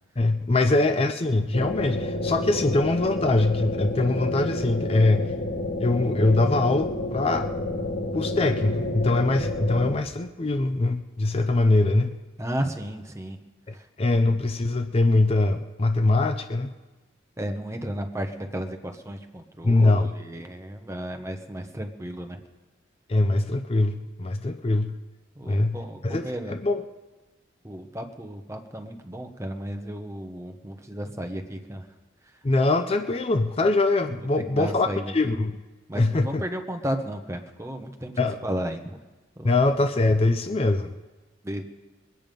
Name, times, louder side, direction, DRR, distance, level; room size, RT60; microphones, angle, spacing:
voice 1, 0.2-5.3 5.8-7.5 8.1-12.2 13.7-16.7 19.6-20.1 23.1-24.9 25.5-26.8 32.4-35.6 35.9-36.4 38.2-38.4 39.4-41.0, left 2 dB, 30° left, 9 dB, 0.5 m, -23 dB
sound 1, 1.5-10.0, left 1 dB, 75° left, 1.4 m, -29 dB
voice 2, 12.4-13.4 13.7-13.9 17.4-22.4 25.4-26.5 27.6-31.9 34.5-35.1 35.9-38.1 38.4-39.0 39.4-39.5 41.4-41.6, right 1 dB, 15° right, 5 dB, 0.9 m, -33 dB
21.5 x 9.1 x 5.2 m, 1.2 s
head